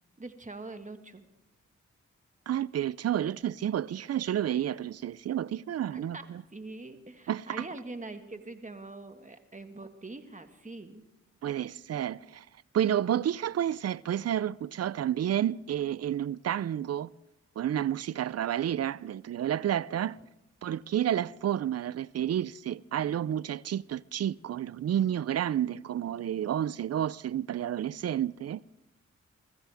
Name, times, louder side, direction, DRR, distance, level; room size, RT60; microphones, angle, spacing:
voice 1, 0.2-1.2 5.9-6.2 6.5-11.0, right 2 dB, 25° right, 1.7 m, -43 dB
voice 2, 2.5-6.4 7.3-7.7 11.4-12.4 12.7-17.1 17.6-20.2 20.6-28.6, right 10 dB, 55° right, 0.5 m, -30 dB
23.5 x 14.0 x 3.5 m
cardioid pair, 40°, 29 cm